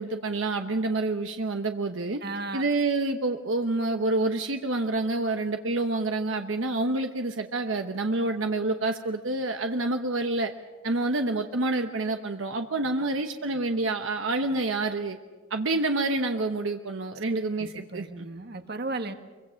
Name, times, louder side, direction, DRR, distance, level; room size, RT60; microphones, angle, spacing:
voice 1, 0.0-2.2 2.5-10.5 10.8-15.2 15.5-18.3, right 2 dB, 75° right, 5 dB, 1.1 m, -28 dB
voice 2, 2.2-2.6 17.3-19.1, right 3 dB, 55° right, 7 dB, 1.5 m, -35 dB
24.5 x 23.5 x 6.4 m, 1.3 s
head